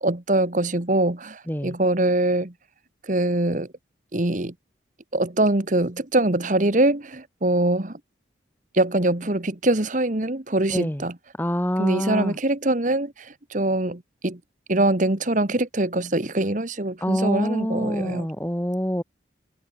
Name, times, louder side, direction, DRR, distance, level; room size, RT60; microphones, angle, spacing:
voice 1, 0.0-2.5 3.0-3.7 4.1-4.5 5.1-8.0 8.7-11.1 11.8-14.4 14.7-18.3, right 2 dB, 45° right, 1.5 m, -23 dB
voice 2, 10.7-11.0 11.4-12.4 17.0-19.0, equal, 10° left, 2.6 m, -25 dB
head